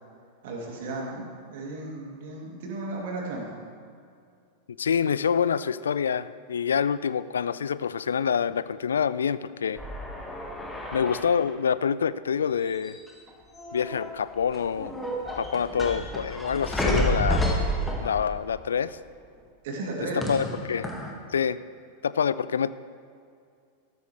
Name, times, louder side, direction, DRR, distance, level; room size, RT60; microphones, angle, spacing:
voice 1, 0.4-3.6 19.6-20.2, right 2 dB, 55° right, -2 dB, 2.8 m, -35 dB
voice 2, 4.8-9.8 10.9-13.0 13.7-14.9 15.4-17.5 18.0-19.0 20.1-20.9 21.3-21.6 22.0-22.7, left 7 dB, 70° left, 16 dB, 0.3 m, -26 dB
sound 1, 9.8-11.5 12.7-13.3 13.5-14.2 14.5-18.5 20.2-21.1, equal, 10° left, 1.8 m, -30 dB
14.5 x 13.0 x 3.3 m, 2.3 s
figure-of-eight pair, 90°, 0 cm